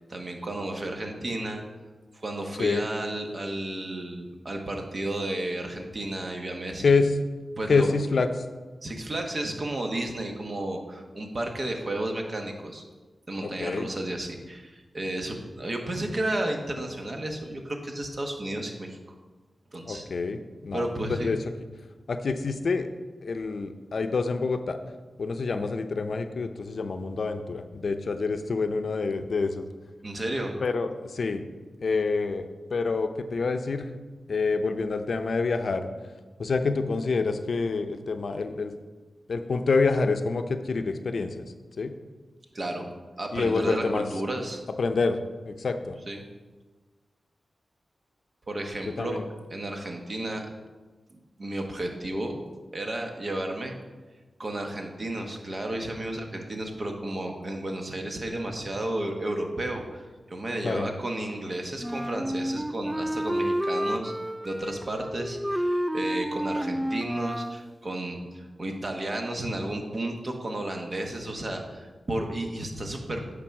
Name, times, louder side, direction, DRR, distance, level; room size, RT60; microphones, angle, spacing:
voice 1, 0.0-1.6 2.1-6.8 7.6-7.9 8.8-12.9 13.3-19.0 19.7-20.0 20.7-21.3 30.0-30.6 42.5-42.8 43.2-44.6 46.1-46.2 48.5-49.2 49.5-50.5 51.4-52.4 52.7-53.7 54.4-64.1 64.4-73.3, right 1 dB, 45° right, 3 dB, 1.2 m, -32 dB
voice 2, 7.7-8.3 13.4-13.9 19.9-20.9 21.2-21.4 22.1-22.9 23.2-24.8 25.2-29.7 30.6-31.4 31.8-33.9 34.3-35.9 36.4-38.7 39.3-41.4 41.8-41.9 43.3-44.0 44.8-45.2 45.5-46.0 49.0-49.3 60.6-60.9, left 4 dB, 70° left, 8 dB, 0.5 m, -27 dB
Wind instrument woodwind instrument, 61.8-67.7, equal, 10° right, 0.3 m, -30 dB
8.9 x 3.9 x 5.9 m, 1.3 s
cardioid pair, 60°, 0 cm